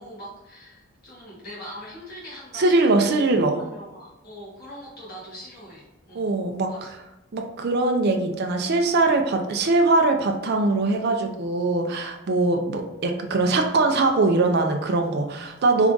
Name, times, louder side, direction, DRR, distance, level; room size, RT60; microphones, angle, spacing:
voice 1, 0.0-3.3 3.6-6.3 6.7-6.9, equal, 45° left, -8 dB, 1.3 m, -42 dB
voice 2, 2.5-3.6 6.1-7.0 7.3-15.9, right 2 dB, 50° right, 4 dB, 0.4 m, -22 dB
3.4 x 2.5 x 3.8 m, 0.97 s
head